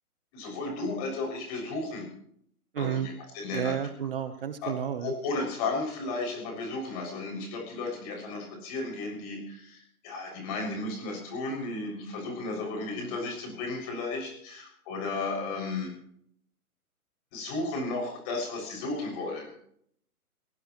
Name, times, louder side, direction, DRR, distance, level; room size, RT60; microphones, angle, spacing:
voice 1, 0.3-2.1 2.8-3.8 4.6-15.9 17.3-19.5, left 3 dB, 25° left, 1 dB, 6.9 m, -34 dB
voice 2, 2.7-3.1 3.5-5.1, right 9 dB, 40° right, 10 dB, 1.2 m, -31 dB
23.0 x 17.5 x 3.2 m, 0.67 s
hypercardioid pair, 160°, 45 cm